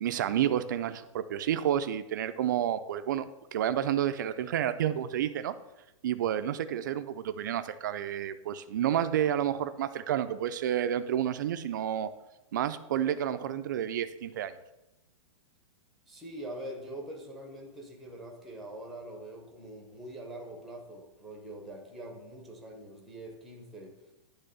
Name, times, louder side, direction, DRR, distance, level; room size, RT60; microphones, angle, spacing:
voice 1, 0.0-5.5 6.0-12.1 12.5-14.6, right 10 dB, 35° right, 11 dB, 0.4 m, -30 dB
voice 2, 16.1-23.9, right 1 dB, ahead, 0 dB, 0.7 m, -44 dB
9.9 x 3.5 x 6.7 m, 0.98 s
hypercardioid pair, 180°, 17 cm